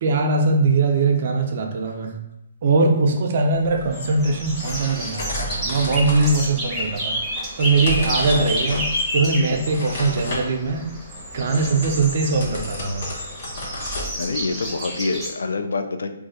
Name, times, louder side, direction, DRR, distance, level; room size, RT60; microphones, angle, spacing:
voice 1, 0.0-2.1 2.6-7.2 7.6-8.9 9.1-10.8 11.3-13.1, right 3 dB, 50° right, 3 dB, 0.5 m, -21 dB
sound 1, 3.5-14.7, left 1 dB, 55° left, 0.9 m, -34 dB
sound 2, 3.9-15.3, equal, 5° right, 0.8 m, -30 dB
voice 2, 14.2-16.1, left 3 dB, 80° left, 7 dB, 0.3 m, -26 dB
2.5 x 2.3 x 3.9 m, 0.86 s
hypercardioid pair, 150°, 0 cm